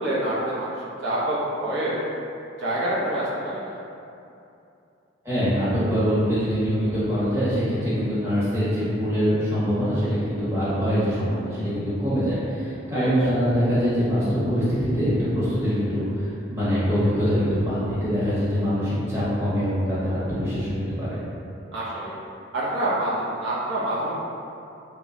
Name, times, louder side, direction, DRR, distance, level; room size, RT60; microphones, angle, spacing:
voice 1, 0.0-2.0 2.6-3.8 12.9-13.1 21.7-22.1 22.5-24.1, right 1 dB, 70° right, -8 dB, 0.7 m, -26 dB
voice 2, 5.2-21.2, equal, 10° right, -12 dB, 0.9 m, -24 dB
3.0 x 2.2 x 3.6 m, 2.7 s
head